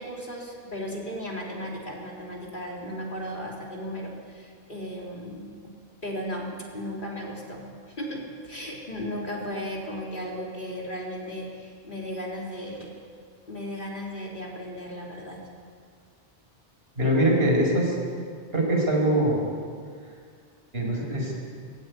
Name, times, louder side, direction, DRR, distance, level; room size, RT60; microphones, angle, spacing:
voice 1, 0.0-5.7 6.0-12.9 13.5-15.4, equal, 50° left, -2 dB, 3.9 m, -35 dB
voice 2, 17.0-18.0 18.5-19.5 20.7-21.3, right 1 dB, 65° right, -1 dB, 5.4 m, -23 dB
20.5 x 15.5 x 9.5 m, 2.1 s
omnidirectional pair, 1.1 m